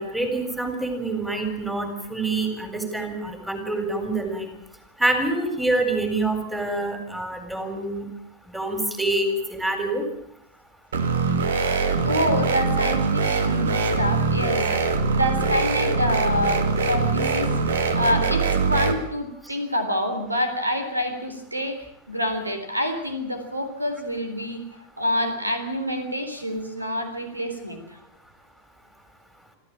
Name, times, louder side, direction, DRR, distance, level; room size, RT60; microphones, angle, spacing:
voice 1, 0.0-4.5 5.0-8.1 8.5-10.0, right 2 dB, 5° right, 6 dB, 4.1 m, -26 dB
sound 1, 10.9-18.9, right 4 dB, 65° right, 2.3 m, -23 dB
voice 2, 12.0-24.6 25.0-28.0, equal, 85° right, 8 dB, 3.6 m, -27 dB
26.0 x 14.5 x 8.8 m, 0.79 s
figure-of-eight pair, 90°, 0 cm